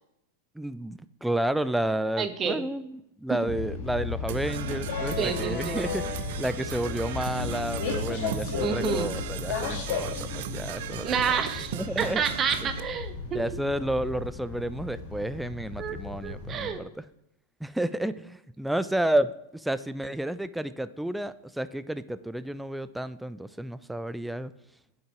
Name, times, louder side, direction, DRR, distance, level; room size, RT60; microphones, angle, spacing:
voice 1, 0.6-11.2 11.7-12.2 12.6-12.7 13.3-16.9 17.6-24.5, right 1 dB, 5° right, 14 dB, 0.4 m, -31 dB
voice 2, 2.2-2.6 3.4-3.5 5.2-5.8 8.6-9.1 11.0-13.4 15.8-16.0 16.2-16.8, right 7 dB, 25° right, 9 dB, 1.1 m, -29 dB
sound 1, 3.5-16.7, left 5 dB, 45° left, 2.6 m, -34 dB
Percussion / Brass instrument, 4.3-12.8, right 12 dB, 55° right, 0.6 m, -38 dB
8.4 x 8.2 x 4.8 m, 0.80 s
figure-of-eight pair, 90°, 0 cm